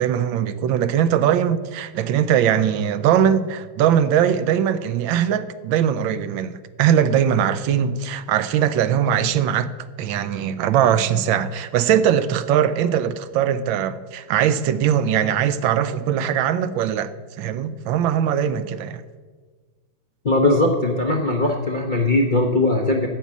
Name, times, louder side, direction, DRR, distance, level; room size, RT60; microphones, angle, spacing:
voice 1, 0.0-9.7 10.0-17.1 17.4-19.0, right 9 dB, 80° right, 1.4 m, -20 dB
voice 2, 20.2-23.1, left 2 dB, 40° left, 0.7 m, -19 dB
9.3 x 7.3 x 8.2 m
omnidirectional pair, 2.1 m